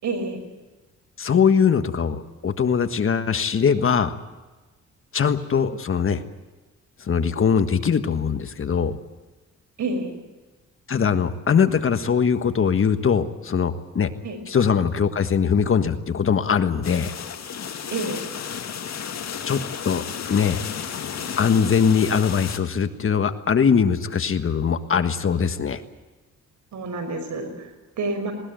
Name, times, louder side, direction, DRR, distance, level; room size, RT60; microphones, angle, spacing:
voice 1, 0.0-0.4 9.8-10.1 14.2-14.4 17.9-18.2 26.7-28.3, right 3 dB, 75° right, 6 dB, 5.8 m, -28 dB
voice 2, 1.2-4.1 5.1-6.2 7.0-8.9 10.9-14.1 14.5-17.1 19.4-20.6 21.4-25.8, left 6 dB, 45° left, 9 dB, 1.5 m, -21 dB
sound 1, 16.8-22.6, left 7 dB, 65° left, 2.2 m, -33 dB
20.0 x 19.5 x 9.1 m, 1.2 s
cardioid pair, 110°, 29 cm